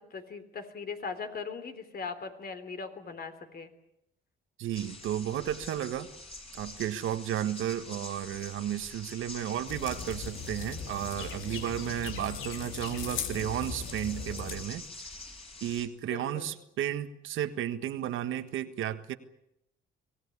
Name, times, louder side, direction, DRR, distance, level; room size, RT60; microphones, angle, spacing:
voice 1, 0.1-3.7 16.0-16.5, left 5 dB, 50° left, 8 dB, 3.5 m, -39 dB
voice 2, 4.6-6.1 6.5-14.8 15.6-19.1, right 11 dB, 80° right, 10 dB, 1.5 m, -33 dB
sound 1, 4.7-15.9, left 2 dB, 30° left, 5.4 m, -46 dB
sound 2, 9.7-14.6, left 7 dB, 90° left, 2.2 m, -39 dB
24.5 x 17.5 x 9.8 m, 0.79 s
cardioid pair, 90°, 20 cm